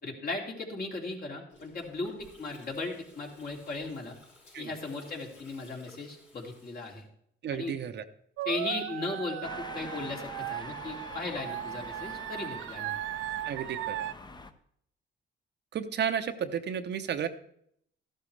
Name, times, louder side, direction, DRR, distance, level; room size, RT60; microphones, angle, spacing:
voice 1, 0.0-4.2 4.6-7.1 7.5-7.7 8.4-13.0, left 3 dB, 50° left, 0 dB, 2.7 m, -37 dB
Gurgling, 1.5-7.0, left 2 dB, 90° left, 5.7 m, -57 dB
voice 2, 7.4-8.0 13.5-14.1 15.7-17.3, right 8 dB, 60° right, 9 dB, 0.8 m, -32 dB
sound 1, 8.4-14.1, right 14 dB, 85° right, 0.4 m, -37 dB
sound 2, 9.4-14.5, left 3 dB, 20° left, 0.8 m, -45 dB
13.5 x 12.0 x 3.3 m, 0.70 s
cardioid pair, 90°, 20 cm